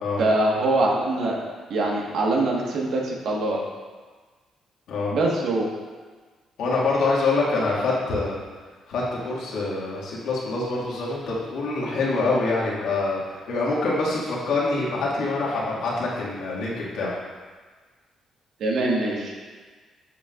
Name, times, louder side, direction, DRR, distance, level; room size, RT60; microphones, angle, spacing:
voice 1, 0.2-1.4 1.7-3.6 5.1-5.7 18.6-19.3, right 2 dB, 75° right, -2 dB, 1.5 m, -23 dB
voice 2, 6.6-8.4 8.9-17.1, left 3 dB, 80° left, -6 dB, 2.1 m, -25 dB
8.5 x 7.2 x 2.5 m, 1.4 s
cardioid pair, 90°, 0 cm